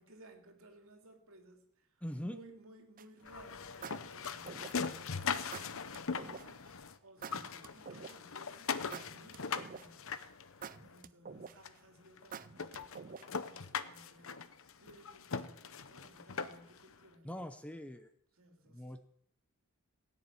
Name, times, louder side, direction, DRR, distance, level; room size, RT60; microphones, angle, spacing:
voice 1, 0.0-10.2 10.6-17.4 18.3-19.0, right 1 dB, 65° right, 4 dB, 3.0 m, -60 dB
voice 2, 2.0-2.4 17.2-18.1 18.7-19.0, equal, 5° left, 8 dB, 0.7 m, -42 dB
sound 1, 3.0-3.3 3.8-5.0 5.5-6.5 7.2-8.4 8.9-10.1 10.6-11.8 12.3-13.5, right 6 dB, 40° right, 0.5 m, -47 dB
sound 2, 3.2-7.0 7.2-11.0 11.7-11.8 12.2-12.3 12.6-16.8, left 5 dB, 65° left, 0.9 m, -40 dB
17.5 x 7.1 x 9.3 m, 0.73 s
head